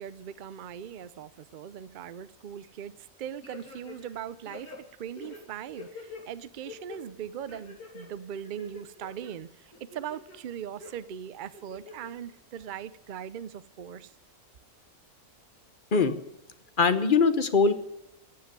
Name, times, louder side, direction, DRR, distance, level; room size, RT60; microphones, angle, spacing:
voice 1, 0.0-2.9 3.2-14.1, right 9 dB, 75° right, 0.4 m, -40 dB
sound 1, 3.4-4.2 4.5-6.2 6.6-7.0 7.5-8.1 8.4-9.3 9.7-10.4 10.8-10.9 11.5-12.1 12.5-12.6, left 4 dB, 85° left, 3.6 m, -45 dB
voice 2, 16.8-17.7, left 5 dB, 40° left, 1.0 m, -21 dB
15.0 x 7.7 x 9.8 m
omnidirectional pair, 1.6 m